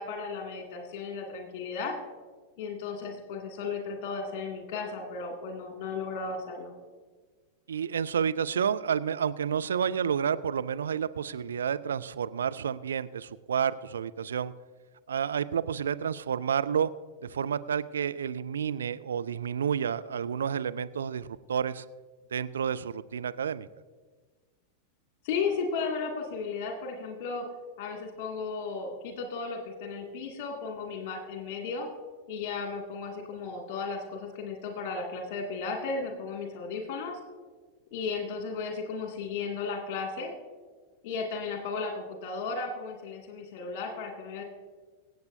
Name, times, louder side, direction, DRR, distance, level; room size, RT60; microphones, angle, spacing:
voice 1, 0.0-1.9 2.6-6.7 25.2-27.5 27.8-31.9 32.3-37.2 37.9-40.3 41.0-44.4, left 4 dB, 45° left, 2 dB, 2.3 m, -35 dB
voice 2, 7.7-14.5 15.1-16.9 17.2-21.8 22.3-23.7, right 7 dB, 65° right, 13 dB, 0.3 m, -30 dB
24.0 x 8.0 x 2.7 m, 1.4 s
figure-of-eight pair, 90°, 0 cm